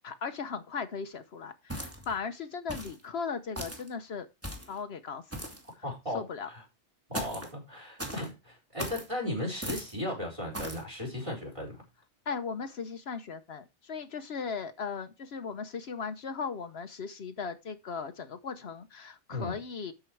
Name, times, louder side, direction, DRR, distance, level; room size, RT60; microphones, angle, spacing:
voice 1, 0.0-4.3 4.7-5.2 6.1-6.5 12.3-19.9, left 5 dB, 65° left, 1.1 m, -37 dB
sound 1, 1.7-2.2 2.7-3.0 3.6-3.9 4.4-4.8 5.3-5.7 7.1-7.5 8.0-8.3 8.8-9.1 9.6-9.9 10.5-10.8, right 1 dB, 10° right, 2.4 m, -38 dB
voice 2, 5.8-6.6 7.1-11.8 19.3-19.5, left 1 dB, 30° right, 4.4 m, -36 dB
12.5 x 5.1 x 4.5 m
omnidirectional pair, 1.2 m